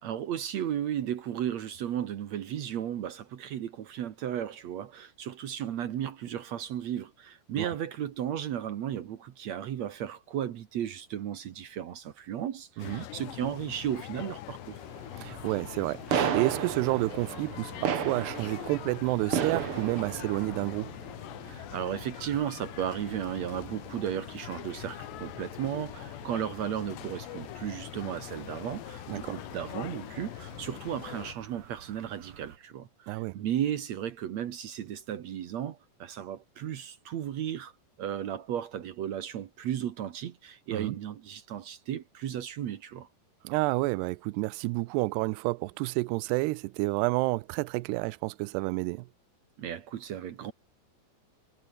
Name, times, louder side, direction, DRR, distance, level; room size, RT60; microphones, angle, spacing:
voice 1, 0.0-14.8 21.4-37.7 38.0-43.1 49.6-50.5, right 10 dB, 65° right, 1.8 m, -35 dB
sound 1, 12.8-31.4, left 16 dB, 85° left, 3.3 m, -43 dB
voice 2, 12.8-13.1 15.2-20.9 29.1-29.4 33.1-33.4 40.7-41.0 43.4-49.1, right 22 dB, 85° right, 2.6 m, -30 dB
sound 2, 14.6-32.6, right 8 dB, 45° right, 1.9 m, -38 dB
omnidirectional pair, 4.8 m